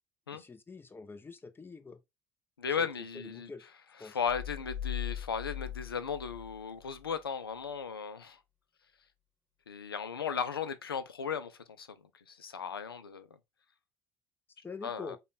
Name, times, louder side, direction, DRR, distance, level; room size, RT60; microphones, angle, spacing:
voice 1, 0.3-2.0 2.8-2.9 3.1-3.6 4.0-4.2 14.6-15.2, left 4 dB, 20° left, 0.7 m, -45 dB
voice 2, 2.6-3.5 4.0-8.4 9.7-11.9 12.3-13.3 14.8-15.2, left 6 dB, 85° left, 0.4 m, -36 dB
sound 1, 4.3-7.1, left 10 dB, 15° right, 1.2 m, -40 dB
5.0 x 2.3 x 3.9 m
figure-of-eight pair, 55°, 12 cm